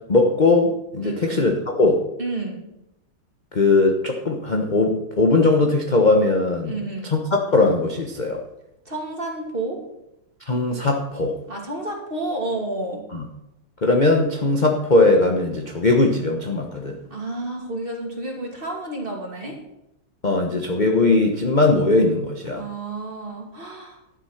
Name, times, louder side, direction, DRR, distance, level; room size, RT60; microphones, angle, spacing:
voice 1, 0.1-2.0 3.5-6.7 7.0-8.4 10.5-11.4 13.1-13.2 13.8-17.0 20.2-22.6, left 2 dB, 30° left, 2 dB, 0.9 m, -19 dB
voice 2, 1.0-1.3 2.2-2.6 6.6-7.1 8.9-9.8 11.5-13.0 17.0-19.6 22.5-24.0, right 2 dB, 25° right, 0 dB, 2.6 m, -30 dB
12.0 x 9.3 x 5.8 m, 0.86 s
omnidirectional pair, 2.4 m